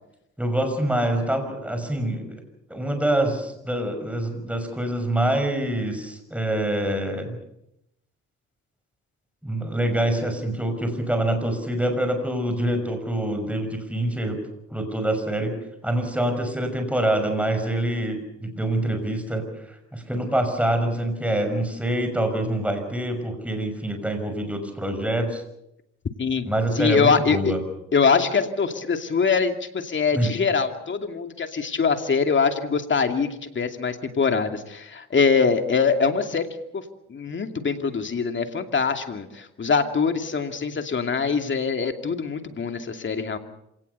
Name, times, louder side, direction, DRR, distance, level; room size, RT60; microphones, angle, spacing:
voice 1, 0.4-2.4 2.7-7.4 9.4-14.4 14.7-15.5 15.8-25.4 26.4-27.6 30.1-30.3, right 1 dB, 5° right, 6 dB, 6.0 m, -25 dB
voice 2, 26.8-27.5 27.9-33.3 33.5-36.5 36.7-36.8 37.1-43.4, left 5 dB, 40° left, 6 dB, 2.6 m, -23 dB
27.0 x 18.0 x 6.9 m, 0.82 s
cardioid pair, 90°, 30 cm